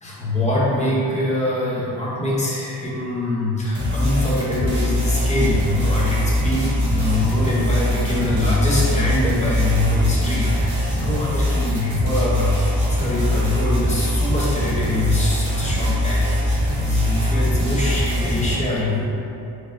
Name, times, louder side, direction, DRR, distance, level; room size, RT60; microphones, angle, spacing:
voice 1, 0.0-19.1, left 1 dB, 15° left, -6 dB, 0.7 m, -23 dB
sound 1, 3.8-18.5, equal, 55° right, 1.4 m, -22 dB
4.4 x 3.4 x 2.5 m, 2.8 s
wide cardioid pair, 165°, 42 cm